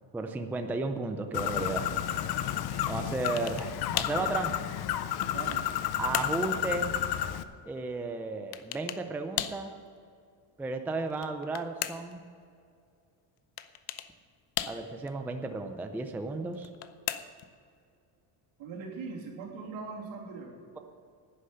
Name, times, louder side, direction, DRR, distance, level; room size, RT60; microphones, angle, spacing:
voice 1, 0.1-1.9 2.8-4.5 6.0-6.9 7.6-9.7 10.6-12.2 14.7-16.7, right 3 dB, 5° right, 6 dB, 0.4 m, -34 dB
Bird, 1.3-7.4, left 11 dB, 55° left, 0.7 m, -31 dB
sound 1, 3.3-3.7 4.0-4.2 4.9-5.7 6.1-6.4 8.5-9.0 9.4-9.7 11.1-12.2 13.6-14.1 14.6-15.1 16.5-17.5, left 13 dB, 85° left, 0.8 m, -36 dB
voice 2, 5.3-5.7 18.6-20.6, right 4 dB, 75° right, -1 dB, 3.1 m, -40 dB
11.5 x 9.9 x 6.7 m, 2.3 s
cardioid pair, 150°, 47 cm